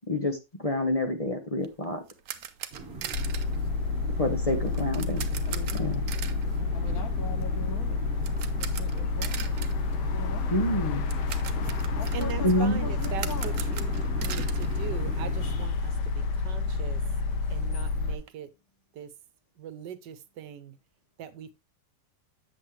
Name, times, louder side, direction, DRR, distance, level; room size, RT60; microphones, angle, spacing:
voice 1, 0.1-2.0 4.2-5.4 5.7-6.0 10.5-11.0 12.4-12.8, left 1 dB, 25° left, 0.9 m, -28 dB
sound 1, 1.6-15.6 15.8-16.0 16.4-16.5 16.7-18.3, right 10 dB, 65° right, 1.1 m, -42 dB
sound 2, 2.7-15.7, right 3 dB, 40° right, 1.5 m, -40 dB
sound 3, 3.1-18.2, left 3 dB, 75° left, 1.4 m, -29 dB
voice 2, 5.5-5.9 6.7-8.1 8.6-9.6 10.1-11.0 11.9-13.7 14.0-14.1, left 5 dB, 60° left, 1.5 m, -42 dB
voice 3, 12.1-17.0 17.5-18.5 18.9-19.1 19.6-20.8 21.2-21.6, right 9 dB, 80° right, 1.5 m, -40 dB
8.0 x 7.4 x 3.1 m
omnidirectional pair, 1.8 m